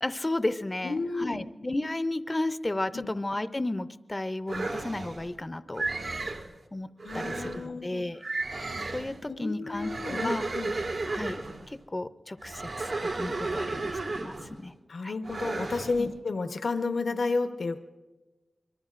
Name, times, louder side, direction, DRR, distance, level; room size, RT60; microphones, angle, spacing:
voice 1, 0.0-6.1 6.7-6.9 7.1-8.2 8.9-10.4 11.1-11.4 11.7-12.9 13.1-14.7 15.0-15.1 16.0-16.1, left 2 dB, 25° left, 12 dB, 0.5 m, -33 dB
voice 2, 0.8-1.4 2.9-3.1 7.0-8.0 9.3-10.7 14.9-17.8, left 3 dB, 85° left, 7 dB, 0.9 m, -31 dB
sound 1, 4.5-5.3 5.8-6.5 7.0-7.7 8.2-9.2 9.7-11.7 12.4-14.6 15.2-16.0, right 3 dB, 85° right, 1.7 m, -33 dB
25.0 x 22.5 x 2.5 m, 1.2 s
wide cardioid pair, 95°, 0 cm